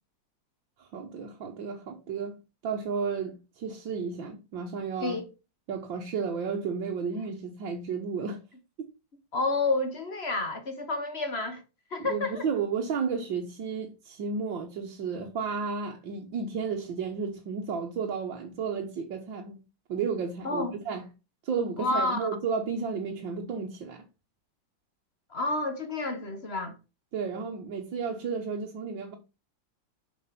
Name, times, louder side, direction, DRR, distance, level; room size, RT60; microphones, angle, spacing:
voice 1, 0.8-2.4 2.6-5.2 5.7-8.4 12.0-19.6 19.9-21.1 21.4-24.0 27.1-29.2, right 5 dB, 75° right, 2.0 m, -32 dB
voice 2, 9.3-11.6 11.9-12.5 20.4-20.8 21.8-22.3 25.3-26.7, left 2 dB, 40° left, 1.3 m, -29 dB
7.2 x 6.0 x 5.9 m
omnidirectional pair, 2.1 m